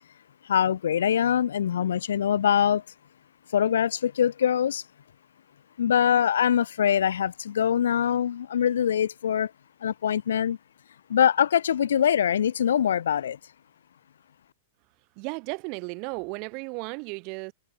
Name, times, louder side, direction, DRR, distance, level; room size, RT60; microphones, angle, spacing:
voice 1, 0.4-2.8 3.5-4.8 5.8-9.5 9.8-10.6 11.1-13.4, left 9 dB, 75° left, 1.2 m, -23 dB
voice 2, 15.2-17.5, right 34 dB, 50° right, 5.8 m, -34 dB
hypercardioid pair, 110°, 0 cm